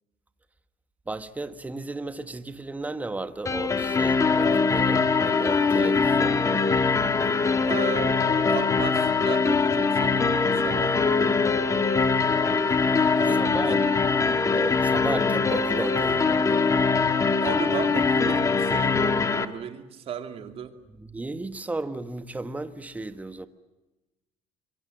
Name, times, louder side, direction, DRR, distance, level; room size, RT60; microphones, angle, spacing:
voice 1, 1.1-6.7 12.9-13.1 13.4-13.8 14.5-16.7 21.0-23.5, right 2 dB, 10° right, 1.4 m, -34 dB
sound 1, 3.4-19.4, left 4 dB, 25° left, 1.7 m, -22 dB
voice 2, 7.6-11.8 13.1-14.0 17.4-20.7, right 8 dB, 50° right, 2.8 m, -36 dB
26.5 x 23.5 x 7.8 m
cardioid pair, 120°, 13 cm